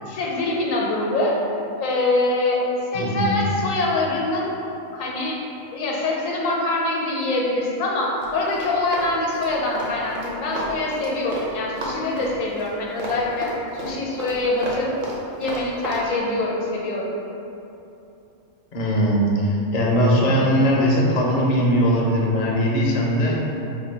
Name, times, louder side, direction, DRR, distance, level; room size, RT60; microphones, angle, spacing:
voice 1, 0.0-1.4 1.8-2.6 2.9-4.6 4.9-5.4 5.7-13.5 13.7-14.9 15.4-17.1, left 2 dB, 75° left, -3 dB, 1.0 m, -24 dB
voice 2, 2.9-3.4 18.7-23.4, equal, 55° left, -3 dB, 0.5 m, -20 dB
Run, 8.2-11.5 11.8-16.0, right 1 dB, 50° right, 0.7 m, -32 dB
3.5 x 2.2 x 4.3 m, 2.9 s
omnidirectional pair, 1.4 m